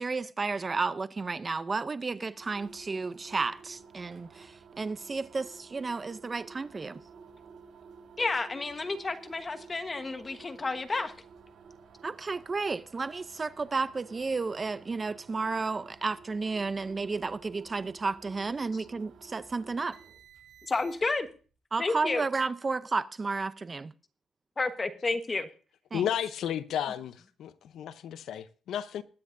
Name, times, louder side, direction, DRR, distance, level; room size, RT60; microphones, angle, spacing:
voice 1, 0.0-7.0 12.0-20.0 21.7-23.9 25.9-26.1, right 4 dB, 25° right, 0.5 m, -32 dB
sound 1, 2.3-21.3, right 5 dB, 75° right, 6.6 m, -53 dB
voice 2, 8.2-11.1 20.6-21.3 21.8-22.2 24.6-25.5, left 3 dB, 25° left, 1.2 m, -31 dB
voice 3, 25.9-29.0, left 10 dB, 75° left, 0.7 m, -33 dB
21.0 x 9.6 x 2.6 m
cardioid pair, 135°, 0 cm